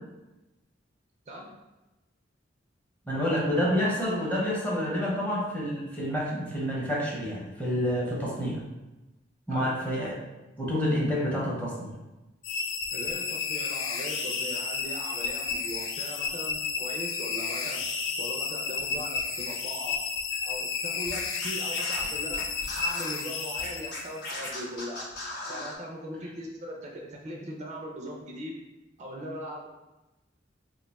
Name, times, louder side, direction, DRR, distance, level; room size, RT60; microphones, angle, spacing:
voice 1, 3.1-8.6 9.5-10.2 10.6-11.9, equal, 10° left, -5 dB, 0.7 m, -28 dB
sound 1, 12.4-24.3, left 5 dB, 80° left, 0.4 m, -32 dB
voice 2, 12.9-17.8 18.2-20.0 20.4-22.4 22.7-25.1 25.5-28.6 29.0-29.7, equal, 35° right, -1 dB, 0.4 m, -39 dB
Scratching (performance technique), 21.1-23.1 23.6-25.8, left 2 dB, 60° left, 0.7 m, -37 dB
2.5 x 2.2 x 4.0 m, 1.0 s
head